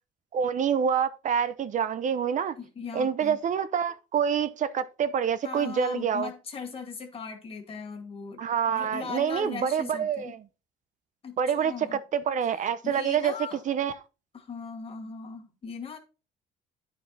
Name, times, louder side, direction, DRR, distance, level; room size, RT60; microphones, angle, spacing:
voice 1, 0.3-2.6 2.9-6.3 8.4-10.4 11.4-13.9, right 7 dB, 45° right, 0.8 m, -27 dB
voice 2, 2.6-3.4 5.4-10.3 11.2-12.0 12.8-13.6 14.3-16.0, left 5 dB, 35° left, 2.2 m, -39 dB
9.8 x 4.7 x 4.1 m
cardioid pair, 110°, 17 cm